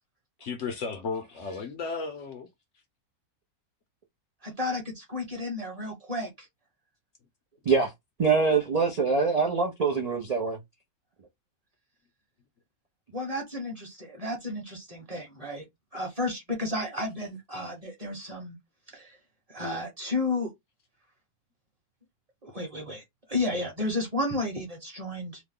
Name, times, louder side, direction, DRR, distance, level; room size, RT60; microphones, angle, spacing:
voice 1, 0.4-2.5, left 4 dB, 60° left, 0.8 m, -34 dB
voice 2, 4.4-6.5 13.1-15.6 15.9-18.6 18.9-19.2 19.5-20.5 22.4-23.0 23.3-25.4, left 2 dB, 30° right, 1.0 m, -32 dB
voice 3, 8.2-10.6, right 4 dB, 55° right, 0.4 m, -24 dB
3.0 x 2.2 x 3.6 m
omnidirectional pair, 1.6 m